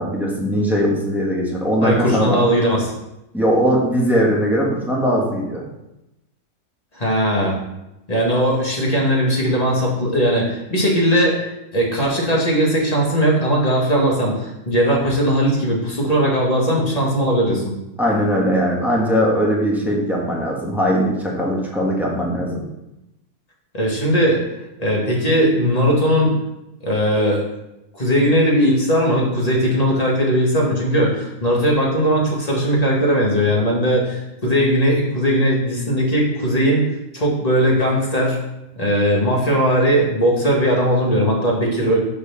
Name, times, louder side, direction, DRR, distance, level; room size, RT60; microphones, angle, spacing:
voice 1, 0.0-2.4 3.3-5.6 18.0-22.6, equal, ahead, -3 dB, 1.5 m, -20 dB
voice 2, 1.8-2.8 6.9-7.6 8.1-17.7 23.7-24.4 24.8-26.4 26.8-27.4 27.9-36.9 37.1-38.4 38.8-42.0, equal, 25° left, -3 dB, 2.0 m, -18 dB
7.2 x 4.8 x 5.8 m, 0.90 s
omnidirectional pair, 1.7 m